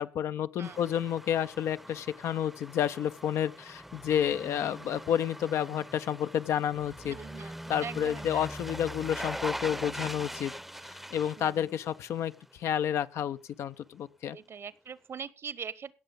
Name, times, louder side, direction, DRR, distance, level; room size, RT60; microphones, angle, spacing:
voice 1, 0.0-7.2 7.7-10.5 10.9-14.4, left 9 dB, 75° left, 0.6 m, -30 dB
sound 1, 0.6-12.5 12.8-12.9, equal, 5° right, 0.6 m, -42 dB
voice 2, 7.0-8.5 11.4-11.7 14.3-15.9, right 6 dB, 60° right, 1.1 m, -42 dB
17.0 x 7.0 x 5.2 m
supercardioid pair, 45°, 5 cm